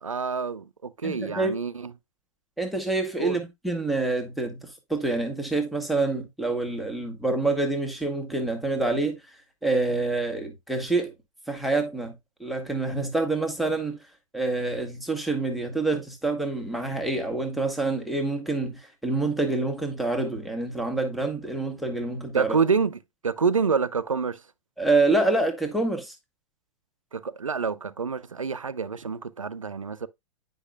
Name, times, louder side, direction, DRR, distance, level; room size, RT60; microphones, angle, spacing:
voice 1, 0.0-1.9 3.2-3.4 22.3-24.4 27.1-30.1, right 5 dB, 85° right, 0.5 m, -27 dB
voice 2, 1.0-1.5 2.6-9.1 9.6-11.1 11.5-12.1 12.4-14.0 14.3-22.6 24.8-26.1, right 2 dB, ahead, 1.5 m, -27 dB
9.8 x 5.4 x 2.3 m
figure-of-eight pair, 100°, 17 cm